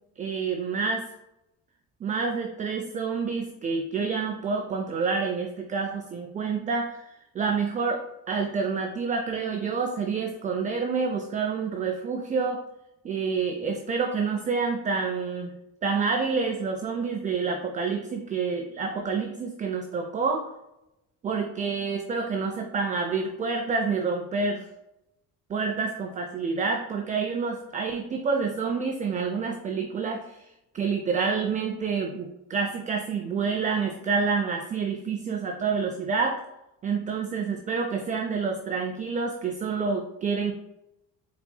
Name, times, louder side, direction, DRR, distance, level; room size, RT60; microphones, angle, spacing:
voice 1, 0.2-1.1 2.0-7.0 7.3-12.6 13.0-15.5 15.8-20.5 21.2-24.7 25.5-30.4 30.7-36.4 36.8-40.5, right 5 dB, 25° right, 4 dB, 0.3 m, -28 dB
4.3 x 4.0 x 2.2 m, 0.90 s
cardioid pair, 100°, 35 cm